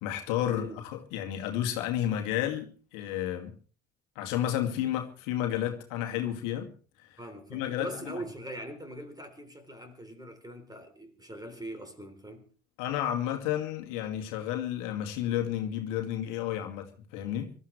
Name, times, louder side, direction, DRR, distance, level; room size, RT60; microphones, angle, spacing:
voice 1, 0.0-3.6 4.2-6.7 7.0-7.2 7.5-8.1 12.8-17.5, left 11 dB, 55° left, 2.4 m, -31 dB
voice 2, 0.5-0.9 7.2-12.5, right 1 dB, 10° right, 3.7 m, -42 dB
25.0 x 13.5 x 3.3 m
figure-of-eight pair, 65°, 38 cm